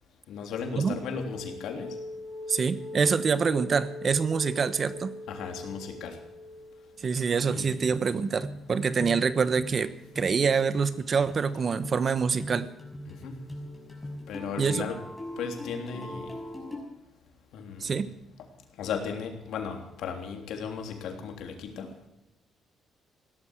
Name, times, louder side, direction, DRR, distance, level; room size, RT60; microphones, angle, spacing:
voice 1, 0.3-1.9 5.3-6.2 7.4-7.9 13.1-13.4 14.3-15.0 15.4-16.3 17.5-17.8 18.8-22.1, left 6 dB, 85° left, 3 dB, 3.3 m, -36 dB
sound 1, 0.7-7.5 7.8-16.8, left 1 dB, 15° left, 6.2 m, -41 dB
voice 2, 2.5-5.1 7.0-12.7 14.6-14.9 17.8-18.1, right 5 dB, 45° right, 13 dB, 1.1 m, -26 dB
17.5 x 12.5 x 6.4 m, 0.92 s
cardioid pair, 90°, 0 cm